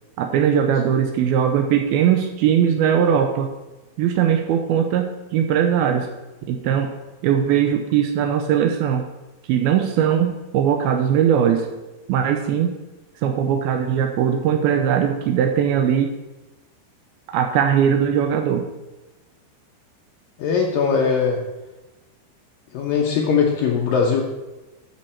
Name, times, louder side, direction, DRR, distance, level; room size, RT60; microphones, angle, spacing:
voice 1, 0.2-3.5 4.0-6.1 6.5-6.9 7.2-9.0 9.5-11.7 12.1-12.8 13.2-16.1 17.3-18.7, right 8 dB, 90° right, 5 dB, 2.2 m, -20 dB
voice 2, 20.4-21.4 22.7-24.2, left 6 dB, 80° left, 0 dB, 2.0 m, -20 dB
13.0 x 6.3 x 4.3 m, 1.1 s
omnidirectional pair, 5.2 m